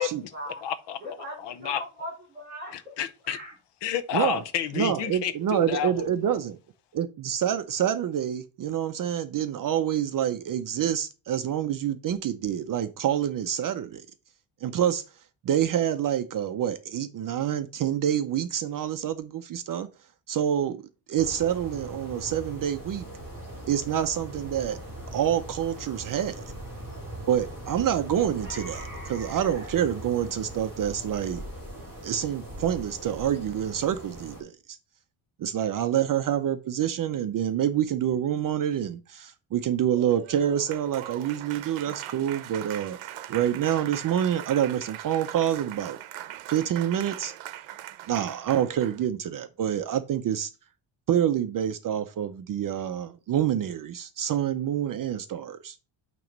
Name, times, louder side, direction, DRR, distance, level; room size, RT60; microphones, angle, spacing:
voice 1, 0.0-0.6 1.0-3.0 3.2-3.5, equal, 20° right, 2.4 m, -39 dB
voice 2, 0.6-1.0 1.4-1.8 3.0-3.4 3.8-6.4, left 9 dB, 60° left, 0.8 m, -30 dB
voice 3, 4.8-6.6 6.9-14.1 14.6-15.0 15.4-19.9 20.3-20.8 21.1-23.1 23.7-24.8 25.1-26.4 27.3-31.4 32.0-34.8 35.4-43.0 43.3-46.0 46.5-47.3 48.1-50.5 51.1-55.8, right 10 dB, 45° right, 0.5 m, -27 dB
sound 1, 21.2-34.4, right 1 dB, 5° right, 4.3 m, -40 dB
Applause, 39.9-49.1, right 13 dB, 90° right, 0.8 m, -41 dB
8.9 x 3.0 x 5.2 m
cardioid pair, 165°, 47 cm